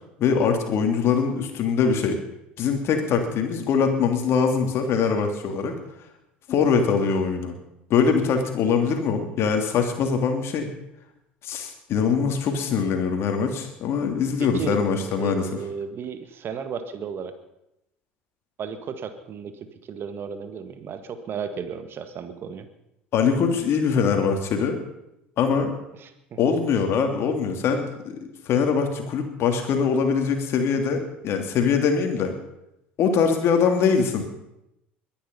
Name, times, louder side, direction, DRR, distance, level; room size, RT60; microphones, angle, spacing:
voice 1, 0.2-2.2 2.6-5.7 6.5-7.5 7.9-10.7 11.4-15.5 23.1-24.8 25.4-25.7 26.4-28.2 28.5-32.3 33.0-34.2, left 6 dB, 50° left, 4 dB, 3.0 m, -22 dB
voice 2, 14.4-14.8 15.0-17.3 18.6-22.7 26.0-26.4, right 7 dB, 40° right, 9 dB, 1.7 m, -34 dB
21.5 x 10.5 x 5.5 m, 0.86 s
figure-of-eight pair, 65°, 6 cm